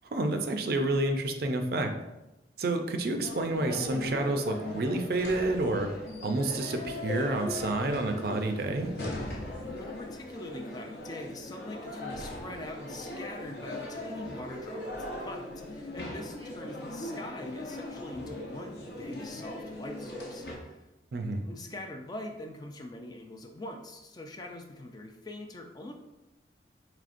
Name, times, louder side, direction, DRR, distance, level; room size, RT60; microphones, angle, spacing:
voice 1, 0.0-1.9 2.6-5.9 6.2-8.9 21.1-21.4, right 2 dB, 55° right, 6 dB, 0.4 m, -29 dB
sound 1, 3.2-20.5, left 1 dB, 60° left, 0.8 m, -39 dB
voice 2, 9.8-20.9 21.5-25.9, left 1 dB, 20° left, 4 dB, 0.3 m, -43 dB
5.0 x 3.2 x 2.5 m, 0.97 s
head